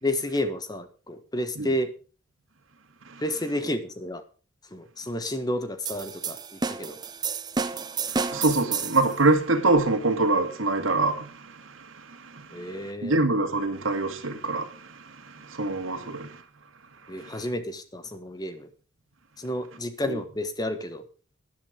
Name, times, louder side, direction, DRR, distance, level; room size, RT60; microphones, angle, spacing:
voice 1, 0.0-1.9 3.2-4.2 4.7-7.0 12.5-13.2 16.0-16.2 17.1-18.7 19.4-21.1, left 1 dB, 20° left, 1.2 m, -31 dB
sound 1, 5.9-9.1, right 5 dB, 20° right, 0.7 m, -30 dB
voice 2, 8.1-16.4 17.2-17.5 20.1-20.2, right 2 dB, 75° right, 2.1 m, -26 dB
12.5 x 10.5 x 5.1 m
head